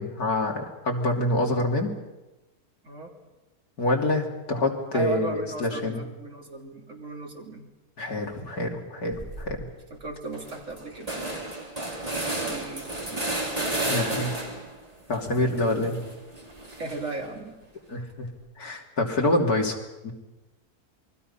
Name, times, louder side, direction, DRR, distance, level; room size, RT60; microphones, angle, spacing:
voice 1, 0.0-2.0 3.8-6.0 8.0-9.7 13.9-14.3 15.1-16.0 17.9-18.3 18.6-19.8 20.0-20.1, left 1 dB, 70° left, 1 dB, 3.4 m, -26 dB
voice 2, 4.9-7.7 9.9-11.4 12.3-14.4 16.7-17.6, right 2 dB, 50° right, 0 dB, 3.6 m, -37 dB
sound 1, 9.1-9.6 10.0-10.1 10.3-14.7 15.1-17.2, right 2 dB, 25° right, 3.6 m, -32 dB
28.0 x 22.5 x 5.7 m, 1.1 s
omnidirectional pair, 1.6 m